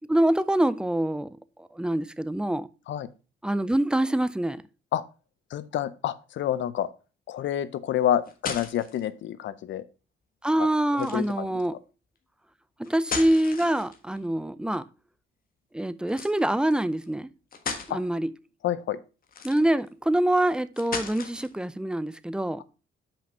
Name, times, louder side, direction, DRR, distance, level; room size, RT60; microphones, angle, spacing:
voice 1, 0.1-2.7 3.4-4.6 10.4-11.7 12.8-14.8 15.7-17.3 17.9-18.3 19.4-22.6, right 1 dB, 5° right, 0.5 m, -25 dB
voice 2, 5.5-6.9 7.3-9.8 11.0-11.5 17.9-18.0 18.6-19.0, left 11 dB, 70° left, 0.7 m, -28 dB
sound 1, 8.0-9.0 10.9-11.4 12.8-14.2 16.1-16.3 17.0-17.1 17.5-17.9 19.2-19.9 20.8-21.6, left 5 dB, 45° left, 1.4 m, -35 dB
5.8 x 5.2 x 5.3 m
cardioid pair, 90°, 20 cm